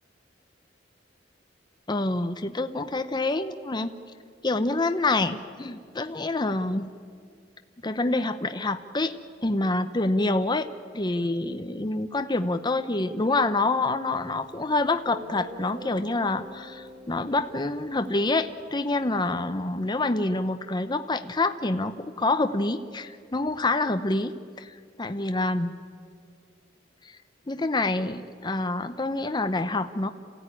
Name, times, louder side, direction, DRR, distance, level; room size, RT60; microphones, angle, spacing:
voice 1, 1.9-3.9 4.4-6.9 7.8-9.1 9.4-10.7 10.9-25.7 27.0-27.2 27.5-30.1, left 2 dB, 25° left, 9 dB, 0.8 m, -27 dB
Guitar, 14.5-14.6 15.1-19.2, equal, 50° right, 3.3 m, -45 dB
27.5 x 16.0 x 9.9 m, 2.1 s
head